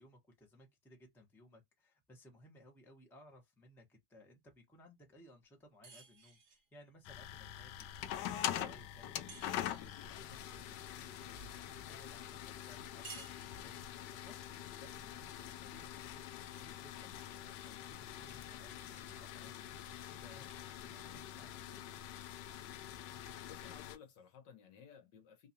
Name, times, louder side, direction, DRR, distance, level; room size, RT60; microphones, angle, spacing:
voice 1, 0.0-16.3 16.5-21.9, left 1 dB, ahead, 0.5 m, -62 dB
sound 1, 5.8-6.7 9.3-10.1 13.0-14.0, right 5 dB, 50° right, 1.6 m, -54 dB
sound 2, 7.0-24.0, left 11 dB, 80° left, 0.9 m, -45 dB
sound 3, 17.7-24.3, left 4 dB, 40° left, 0.9 m, -65 dB
voice 2, 23.5-25.5, left 7 dB, 60° left, 1.4 m, -56 dB
3.9 x 2.7 x 2.7 m
omnidirectional pair, 2.4 m